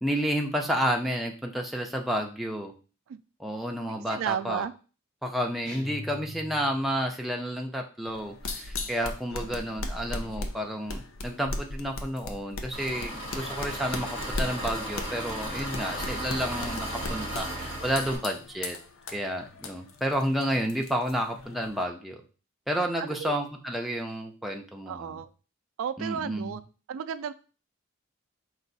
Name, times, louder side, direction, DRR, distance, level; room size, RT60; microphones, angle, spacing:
voice 1, 0.0-2.7 3.4-4.6 5.2-18.8 19.1-22.2 22.7-25.2 26.0-26.6, equal, ahead, 1 dB, 0.5 m, -31 dB
voice 2, 3.9-4.7 23.0-23.3 24.9-25.3 25.8-26.6 26.9-27.3, right 8 dB, 80° right, 12 dB, 0.3 m, -33 dB
sound 1, 5.6-7.0, left 1 dB, 35° left, 1.7 m, -42 dB
sound 2, 8.1-21.8, left 2 dB, 90° left, 0.6 m, -38 dB
Engine, 12.7-18.2, right 1 dB, 70° left, 1.5 m, -35 dB
4.5 x 2.4 x 4.0 m, 0.36 s
head